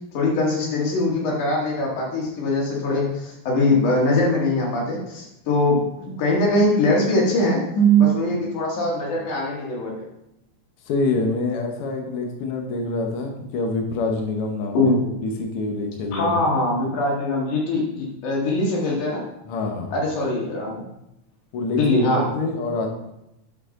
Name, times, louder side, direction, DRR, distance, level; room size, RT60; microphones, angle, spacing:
voice 1, 0.1-9.9 14.7-15.0 16.1-19.2 19.9-20.8 21.8-22.3, left 1 dB, 90° left, -3 dB, 3.4 m, -21 dB
voice 2, 10.8-16.5 19.4-20.1 21.5-21.8 22.1-22.9, left 3 dB, 60° left, 3 dB, 1.7 m, -26 dB
11.0 x 4.9 x 3.8 m, 0.86 s
omnidirectional pair, 3.4 m